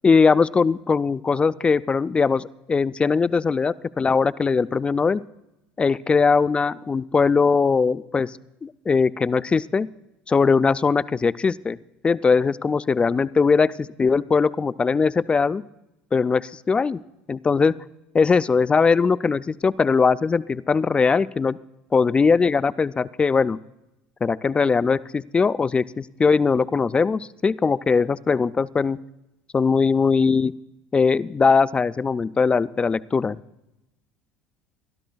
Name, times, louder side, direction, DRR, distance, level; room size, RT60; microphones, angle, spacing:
voice 1, 0.0-5.2 5.8-9.9 10.3-11.8 12.0-13.7 14.0-15.6 16.1-17.0 17.3-17.8 18.1-21.6 21.9-23.6 24.2-29.0 29.5-30.5 30.9-33.4, left 5 dB, 20° left, 16 dB, 0.4 m, -20 dB
23.5 x 12.5 x 2.3 m, 0.94 s
hypercardioid pair, 80°, 5 cm